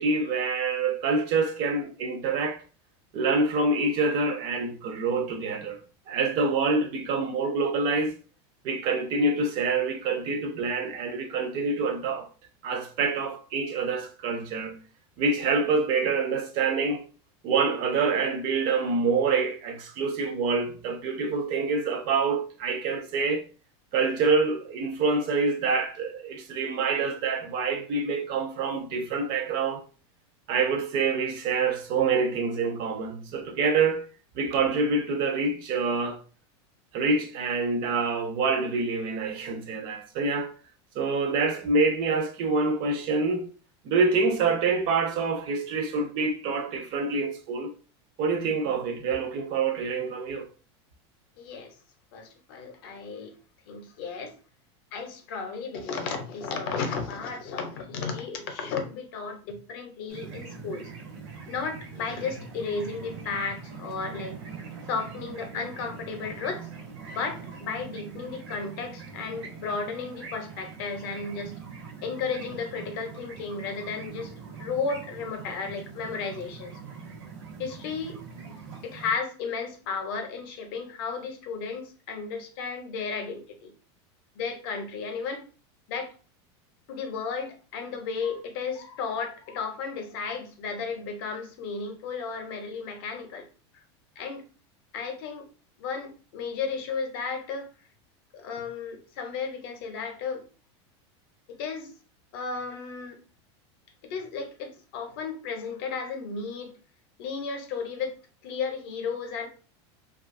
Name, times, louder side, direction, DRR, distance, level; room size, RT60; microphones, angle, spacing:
voice 1, 0.0-2.6 3.1-5.8 6.1-8.1 8.6-12.3 12.6-14.8 15.2-17.1 17.4-23.4 23.9-29.8 30.5-34.1 34.4-36.2 36.9-40.5 41.0-43.5 43.8-47.7 48.2-50.5, right 4 dB, 35° right, 0.3 m, -26 dB
voice 2, 51.4-51.8 52.1-53.3 53.7-54.3 54.9-60.9 61.5-64.3 64.9-66.7 67.0-71.6 72.0-76.8 77.6-78.2 78.5-78.6 78.8-83.7 84.3-85.4 85.9-86.1 86.9-93.5 93.7-93.8 94.2-94.5 94.9-95.5 95.8-97.7 98.3-100.4 101.5-101.9 102.3-103.2 104.0-106.7 107.2-108.2 108.4-109.5, left 5 dB, 50° left, 0.6 m, -34 dB
sound 1, 60.1-79.1, right 5 dB, 90° right, 1.0 m, -43 dB
2.6 x 2.3 x 2.5 m
supercardioid pair, 175°, 15 cm